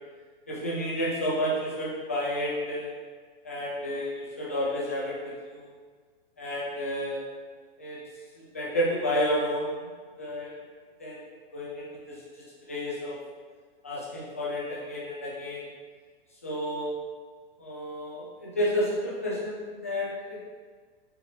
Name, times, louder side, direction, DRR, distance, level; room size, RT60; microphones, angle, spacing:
voice 1, 0.5-2.9 3.4-5.7 6.4-7.2 7.8-8.0 8.5-9.7 10.2-10.6 11.0-11.2 11.5-12.2 12.7-13.2 13.8-15.7 16.4-16.9 17.6-20.4, equal, 15° left, -7 dB, 0.3 m, -31 dB
5.4 x 3.1 x 2.8 m, 1.5 s
hypercardioid pair, 180°, 29 cm